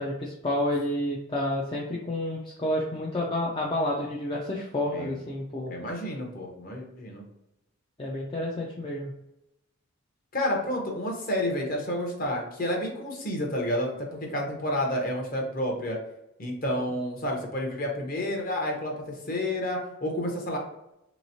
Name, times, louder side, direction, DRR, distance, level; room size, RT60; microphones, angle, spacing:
voice 1, 0.0-5.7 8.0-9.1, left 1 dB, 20° left, -3 dB, 0.4 m, -30 dB
voice 2, 5.7-7.2 10.3-13.9 14.3-16.0 16.4-20.6, left 1 dB, 40° left, 0 dB, 0.8 m, -30 dB
3.4 x 3.0 x 2.7 m, 0.87 s
head